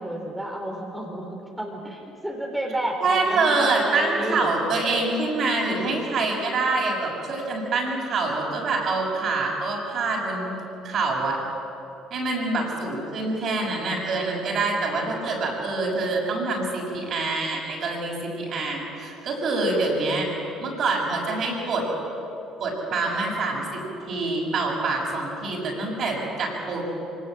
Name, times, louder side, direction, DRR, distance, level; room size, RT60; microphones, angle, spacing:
voice 1, 0.0-4.5, right 1 dB, 5° right, -1 dB, 4.4 m, -31 dB
voice 2, 3.0-11.4 12.1-20.3 20.6-21.9 22.6-23.8 24.1-26.8, right 3 dB, 55° right, -1 dB, 6.8 m, -25 dB
25.0 x 18.0 x 7.7 m, 2.9 s
hypercardioid pair, 60°, 0 cm